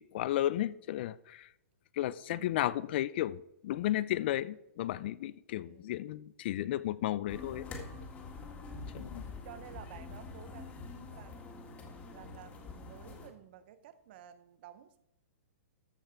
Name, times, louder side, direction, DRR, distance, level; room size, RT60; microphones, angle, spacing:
voice 1, 0.0-1.5 1.9-7.7 8.9-9.2, left 13 dB, 45° left, 18 dB, 0.4 m, -33 dB
voice 2, 2.3-2.7 5.5-6.0 8.7-11.8 12.1-15.0, right 11 dB, 45° right, 13 dB, 0.8 m, -53 dB
sound 1, 7.3-13.3, left 3 dB, 20° left, 1.8 m, -45 dB
14.0 x 5.9 x 4.5 m, 0.84 s
hypercardioid pair, 150°, 8 cm